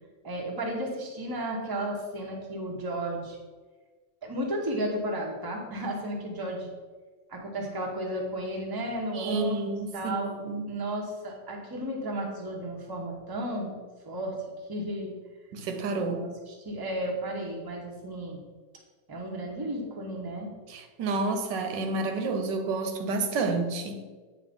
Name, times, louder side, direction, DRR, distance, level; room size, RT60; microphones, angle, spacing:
voice 1, 0.2-3.4 4.2-6.7 7.3-10.3 10.7-13.8 14.0-14.3 14.7-15.1 16.0-18.4 19.1-20.5, right 1 dB, 20° right, 0.8 m, -33 dB
voice 2, 9.1-10.6 15.5-16.3 20.7-24.0, right 3 dB, 90° right, 1.4 m, -30 dB
8.6 x 3.1 x 5.1 m
omnidirectional pair, 1.9 m